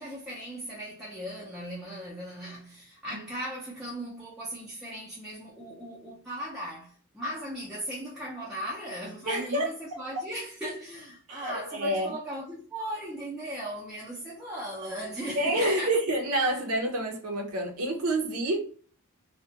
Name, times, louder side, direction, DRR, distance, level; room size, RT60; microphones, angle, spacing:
voice 1, 0.0-15.9, right 1 dB, 5° right, 0.5 m, -38 dB
voice 2, 9.3-9.7 11.3-12.1 15.4-18.6, right 1 dB, 80° right, 0.6 m, -28 dB
2.3 x 2.1 x 2.7 m
head